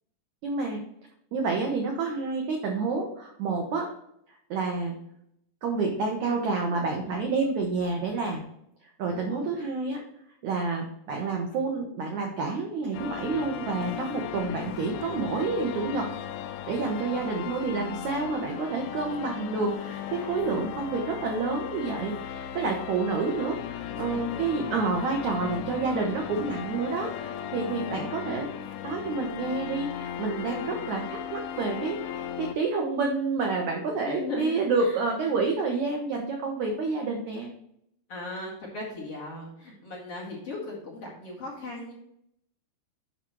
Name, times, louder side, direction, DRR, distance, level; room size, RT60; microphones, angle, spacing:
voice 1, 0.4-0.8 1.3-3.9 4.5-4.9 5.6-8.4 9.0-10.0 10.4-16.1 16.7-37.5, right 4 dB, 90° right, 1 dB, 1.6 m, -29 dB
voice 2, 9.1-9.5 23.8-24.9 27.0-27.3 30.4-30.7 33.9-35.0 38.1-41.9, left 2 dB, 45° left, -4 dB, 2.2 m, -38 dB
sound 1, 12.9-32.5, left 9 dB, 85° left, 2.3 m, -37 dB
8.8 x 5.8 x 3.0 m, 0.74 s
omnidirectional pair, 4.9 m